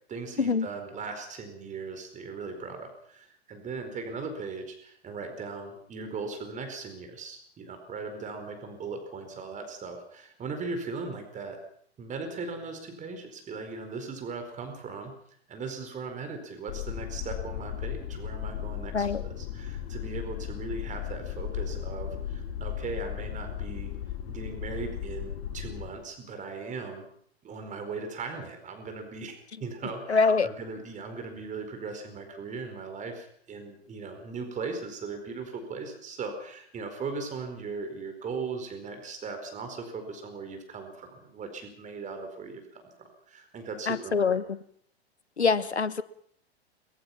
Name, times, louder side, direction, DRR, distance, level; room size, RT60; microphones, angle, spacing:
voice 1, 0.1-11.6 12.0-15.1 15.5-23.9 24.3-27.0 27.4-44.4, right 4 dB, 25° right, 6 dB, 4.6 m, -38 dB
sound 1, 16.7-25.9, left 10 dB, 55° left, 5.8 m, -36 dB
voice 2, 30.1-30.5 43.9-44.6 45.4-46.0, left 5 dB, 80° left, 15 dB, 1.3 m, -24 dB
23.0 x 21.5 x 5.9 m, 0.64 s
figure-of-eight pair, 95°, 32 cm